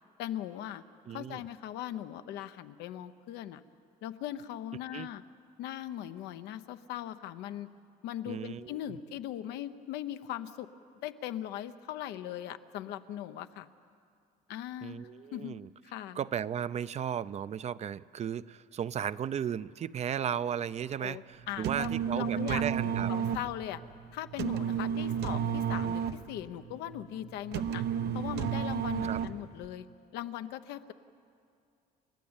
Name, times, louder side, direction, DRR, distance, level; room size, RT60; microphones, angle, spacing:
voice 1, 0.2-0.8 1.1-3.6 4.0-5.2 5.6-7.7 8.0-10.7 11.0-13.7 14.5-15.0 15.3-15.6 15.8-16.2 21.0-23.8 24.1-27.9 28.1-29.9 30.1-30.9, left 12 dB, 90° left, 10 dB, 0.8 m, -39 dB
voice 2, 1.1-1.4 4.9-5.1 8.3-9.0 14.8-15.7 16.2-23.1 24.9-25.2 29.0-29.2, right 9 dB, 40° right, 16 dB, 0.5 m, -35 dB
sound 1, 21.4-29.7, right 8 dB, 75° right, 0.8 m, -32 dB
30.0 x 12.5 x 8.8 m, 2.4 s
cardioid pair, 110°, 17 cm